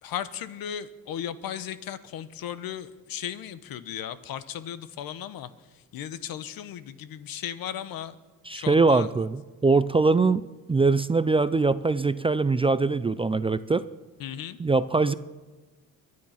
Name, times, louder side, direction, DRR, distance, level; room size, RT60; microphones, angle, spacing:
voice 1, 0.0-8.2 8.5-9.1 14.2-14.6, left 10 dB, 70° left, 14 dB, 1.0 m, -36 dB
voice 2, 8.5-10.4 10.7-13.8 14.6-15.1, right 3 dB, 15° right, 14 dB, 0.4 m, -22 dB
22.5 x 9.6 x 5.8 m, 1.3 s
cardioid pair, 110°, 36 cm